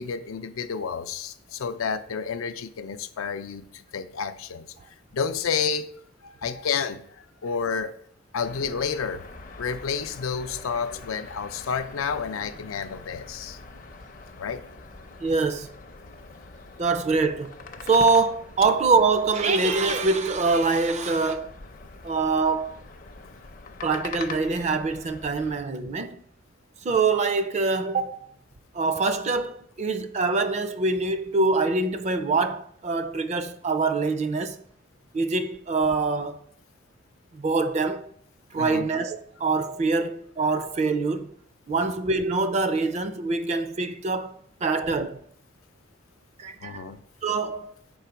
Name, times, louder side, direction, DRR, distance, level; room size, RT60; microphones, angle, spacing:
voice 1, 0.0-4.7 5.1-5.9 6.2-8.0 8.3-9.3 9.6-13.6 14.4-14.6 38.5-38.9 41.7-41.9 46.6-47.0, left 6 dB, 85° left, 0.5 m, -30 dB
sound 1, 8.4-25.6, left 4 dB, 40° left, 0.5 m, -44 dB
voice 2, 15.2-15.7 16.8-17.6 17.9-21.5 22.0-22.8 23.8-26.2 26.8-28.3 28.7-34.6 35.1-36.4 37.3-38.1 38.5-41.3 41.7-45.2 46.4-46.8 47.2-47.7, right 3 dB, 35° right, 0.4 m, -24 dB
4.9 x 3.9 x 5.7 m
head